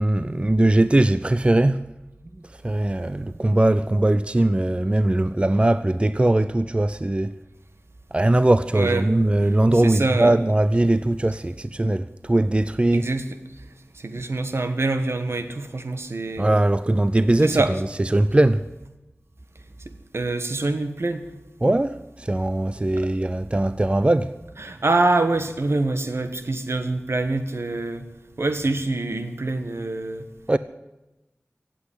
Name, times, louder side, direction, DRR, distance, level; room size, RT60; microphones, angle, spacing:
voice 1, 0.0-1.9 2.4-7.4 8.1-13.1 16.4-18.7 21.6-24.4 30.5-30.6, right 1 dB, 25° right, 0.5 m, -20 dB
voice 2, 8.7-9.2 9.8-10.3 12.9-13.2 13.9-16.5 17.4-17.8 19.8-21.2 24.6-28.1 28.4-30.3, right 2 dB, 70° right, 1.4 m, -25 dB
16.5 x 8.5 x 9.9 m
wide cardioid pair, 65°, 5 cm